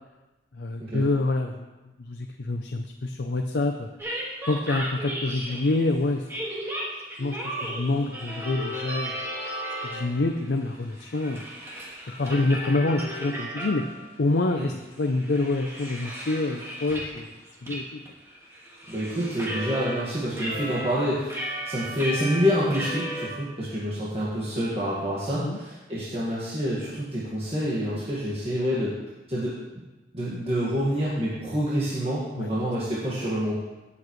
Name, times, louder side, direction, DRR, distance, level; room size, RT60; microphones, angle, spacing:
voice 1, 0.5-1.7 2.0-3.9 4.5-6.2 7.2-9.2 9.8-11.4 12.2-13.9 14.2-17.3 17.6-18.0 25.3-25.6 32.4-32.5, left 2 dB, 80° left, 4 dB, 0.6 m, -27 dB
sound 1, 4.0-5.8 6.3-10.3 10.6-14.1 14.5-14.6 15.0-17.2 17.7-17.8 18.1-20.0 20.3-23.3, equal, 15° right, 1.9 m, -35 dB
voice 2, 18.9-28.9 29.3-29.6 30.1-33.6, equal, 35° right, -8 dB, 1.8 m, -27 dB
17.0 x 7.2 x 3.2 m, 1.1 s
head